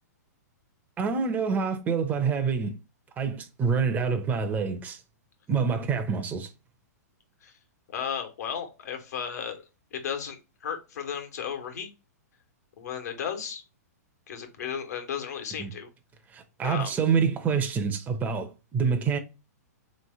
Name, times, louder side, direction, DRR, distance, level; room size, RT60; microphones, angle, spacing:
voice 1, 1.0-2.8 3.2-5.0 5.5-6.5 15.6-15.7 16.3-19.2, right 6 dB, 20° right, 0.6 m, -27 dB
voice 2, 7.9-9.6 9.9-11.9 12.8-13.6 14.3-15.9 16.6-17.0, left 8 dB, 70° left, 1.4 m, -34 dB
3.7 x 3.2 x 3.4 m
hypercardioid pair, 130°, 9 cm